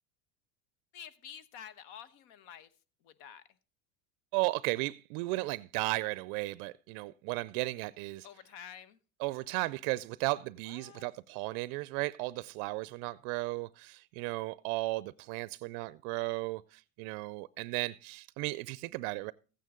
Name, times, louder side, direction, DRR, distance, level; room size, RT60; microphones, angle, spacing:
voice 1, 0.9-2.7 3.0-3.4 8.2-9.0 10.7-11.0, left 9 dB, 60° left, 1.1 m, -49 dB
voice 2, 4.3-8.3 9.2-19.3, right 21 dB, 70° right, 0.5 m, -35 dB
14.5 x 9.2 x 3.7 m
supercardioid pair, 130°, 46 cm